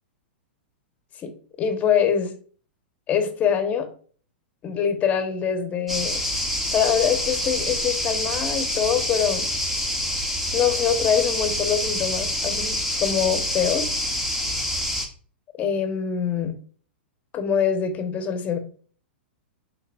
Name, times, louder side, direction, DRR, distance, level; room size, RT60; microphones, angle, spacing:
voice 1, 1.6-2.3 3.1-3.9 4.6-6.2 6.7-9.5 10.5-13.9 15.6-16.6 17.3-18.6, left 8 dB, 25° left, 6 dB, 1.4 m, -24 dB
sound 1, 5.9-15.1, left 1 dB, 5° right, 1.4 m, -26 dB
11.0 x 3.9 x 2.6 m, 0.43 s
figure-of-eight pair, 105°, 6 cm